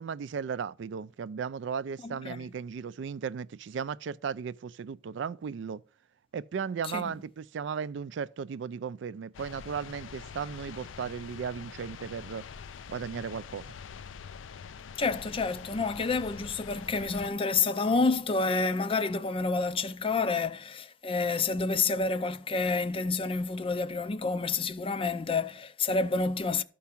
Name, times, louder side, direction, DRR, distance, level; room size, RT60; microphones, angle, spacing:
voice 1, 0.0-5.8 6.3-12.4 12.9-13.7, right 6 dB, 65° right, 0.4 m, -36 dB
voice 2, 2.0-2.5 6.8-7.0 15.0-26.6, left 4 dB, 30° left, 0.4 m, -29 dB
sound 1, 9.3-17.3, left 6 dB, 90° left, 0.4 m, -45 dB
13.0 x 4.7 x 5.7 m
head